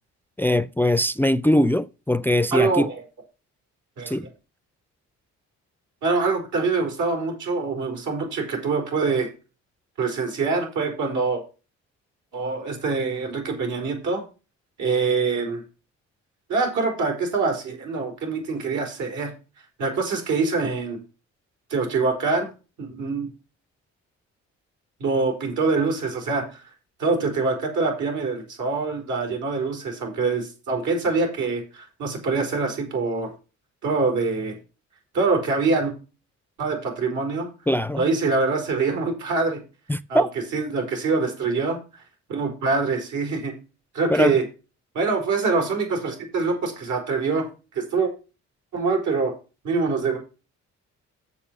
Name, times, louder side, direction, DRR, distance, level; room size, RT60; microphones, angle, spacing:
voice 1, 0.4-2.9 4.1-4.3 37.7-38.0 39.9-40.3 44.1-44.4, left 1 dB, 5° left, 0.4 m, -21 dB
voice 2, 2.5-2.9 4.0-4.1 6.0-9.3 10.0-11.4 12.3-14.2 14.8-15.6 16.5-19.3 19.8-21.0 21.7-22.5 22.8-23.3 25.0-26.6 27.0-33.3 33.8-34.6 35.1-35.9 36.6-37.5 38.0-39.6 40.1-40.2 40.5-41.8 42.3-43.5 43.9-44.4 44.9-48.1 48.7-49.3 49.6-50.2, right 4 dB, 80° right, 4.5 m, -24 dB
7.2 x 7.0 x 6.2 m
cardioid pair, 90°, 30 cm